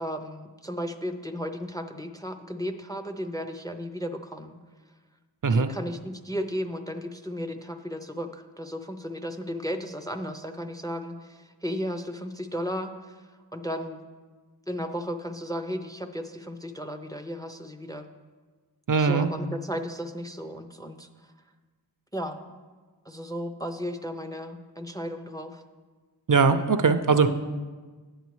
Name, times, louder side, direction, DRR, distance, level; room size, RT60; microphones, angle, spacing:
voice 1, 0.0-4.6 5.5-13.2 13.5-14.0 14.7-18.1 19.0-21.1 22.1-22.4 23.1-25.6, equal, 10° left, 6 dB, 0.4 m, -34 dB
voice 2, 18.9-19.3 26.3-27.3, right 5 dB, 50° right, 9 dB, 0.5 m, -20 dB
10.0 x 8.2 x 3.1 m, 1.4 s
wide cardioid pair, 45°, 43 cm